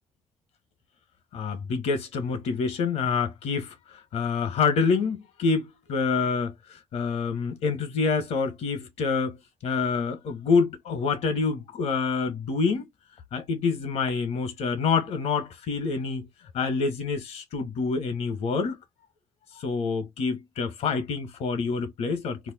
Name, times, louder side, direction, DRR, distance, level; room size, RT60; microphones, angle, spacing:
voice 1, 1.3-3.7 4.1-6.5 6.9-9.4 9.6-12.9 13.3-16.3 16.5-18.8 19.6-22.4, left 5 dB, 80° left, 1.0 m, -27 dB
2.8 x 2.1 x 3.8 m
cardioid pair, 85°, 11 cm